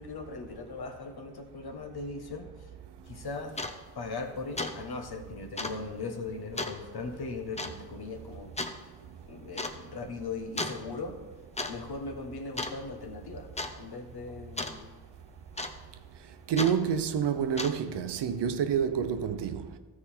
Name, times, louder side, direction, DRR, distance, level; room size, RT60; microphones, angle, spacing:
voice 1, 0.0-2.7 3.1-3.6 3.9-8.5 9.3-11.2 11.7-14.9, left 3 dB, 65° left, 1.2 m, -39 dB
sound 1, 3.1-3.2 3.5-3.8 4.1-4.3 4.6-4.8 5.0-5.1 5.6-5.8 6.6-6.8 7.6-7.8 8.6-8.8 9.6-9.8 10.6-10.8 11.4-11.7 12.0-12.3 12.6-13.1 13.6-13.7 14.6-14.8 15.6-16.0 16.6-16.8 17.4-17.9, left 2 dB, 15° left, 0.8 m, -34 dB
voice 2, 16.5-19.7, right 7 dB, 80° right, 0.7 m, -28 dB
13.5 x 4.8 x 4.3 m
cardioid pair, 45°, 41 cm